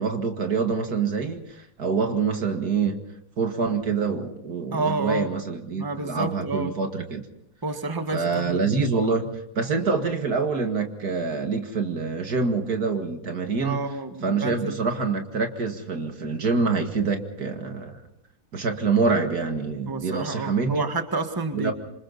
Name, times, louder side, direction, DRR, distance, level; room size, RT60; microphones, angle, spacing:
voice 1, 0.0-3.0 3.4-7.2 8.1-9.3 9.5-13.8 14.2-18.0 18.5-20.8 21.5-21.7, right 4 dB, 70° right, 5 dB, 2.5 m, -26 dB
voice 2, 4.7-5.3 5.8-6.7 7.6-9.2 13.6-14.8 19.9-21.7, right 3 dB, 15° right, 6 dB, 1.6 m, -30 dB
27.0 x 26.0 x 4.1 m, 0.78 s
omnidirectional pair, 1.7 m